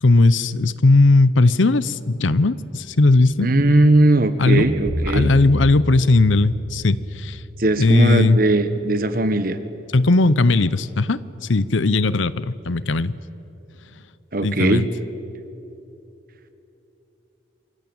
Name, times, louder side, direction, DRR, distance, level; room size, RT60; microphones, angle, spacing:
voice 1, 0.0-3.5 4.4-4.7 5.1-7.4 7.8-8.4 9.9-11.2 11.5-13.1 14.4-14.9, left 2 dB, 80° left, 17 dB, 0.8 m, -17 dB
voice 2, 3.4-5.3 7.6-9.6 14.3-14.8, right 2 dB, 50° right, 10 dB, 1.4 m, -18 dB
sound 1, 4.4-8.5, equal, 25° right, 4.4 m, -30 dB
27.5 x 22.5 x 8.8 m, 2.9 s
head